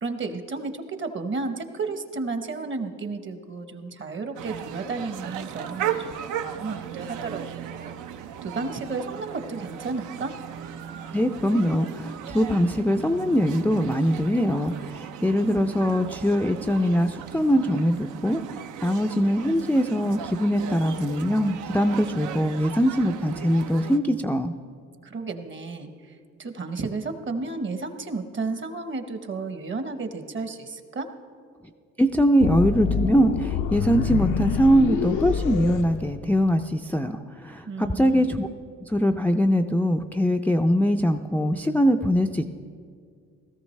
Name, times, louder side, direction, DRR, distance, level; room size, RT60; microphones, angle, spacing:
voice 1, 0.0-8.0 8.4-10.3 25.0-31.1 37.7-38.3, right 3 dB, 40° right, 8 dB, 1.0 m, -33 dB
sound 1, 4.4-24.0, right 9 dB, 80° right, 0.6 m, -36 dB
voice 2, 11.1-24.5 32.0-38.5 38.9-42.5, equal, 5° left, 5 dB, 0.4 m, -22 dB
sound 2, 32.4-36.7, left 8 dB, 85° left, 0.6 m, -27 dB
17.0 x 13.5 x 3.2 m, 2.1 s
cardioid pair, 90°, 30 cm